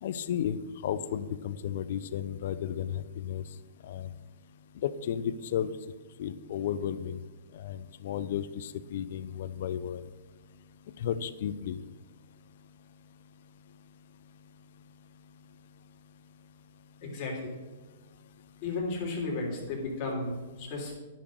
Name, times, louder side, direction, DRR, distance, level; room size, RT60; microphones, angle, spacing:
voice 1, 0.0-3.4 3.8-4.1 4.8-5.7 6.2-7.2 7.5-10.0 11.0-11.8, left 9 dB, 60° left, 13 dB, 0.6 m, -33 dB
voice 2, 17.0-17.5 18.6-21.0, left 3 dB, 35° left, -1 dB, 3.4 m, -34 dB
10.0 x 6.2 x 6.4 m, 1.3 s
hypercardioid pair, 145°, 0 cm